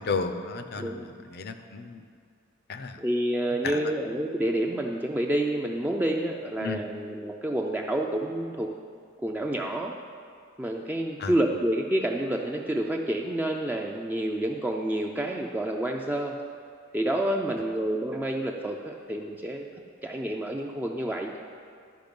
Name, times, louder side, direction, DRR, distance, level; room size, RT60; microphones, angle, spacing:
voice 1, 0.0-2.0 2.7-3.0 3.6-3.8 6.6-6.8 11.2-11.3, left 4 dB, 50° left, 8 dB, 0.5 m, -33 dB
voice 2, 0.8-1.1 3.0-8.7 9.2-9.9 10.6-16.4 16.9-19.7 20.0-21.3, right 1 dB, 10° right, 1 dB, 0.3 m, -28 dB
11.5 x 5.6 x 5.2 m, 2.2 s
head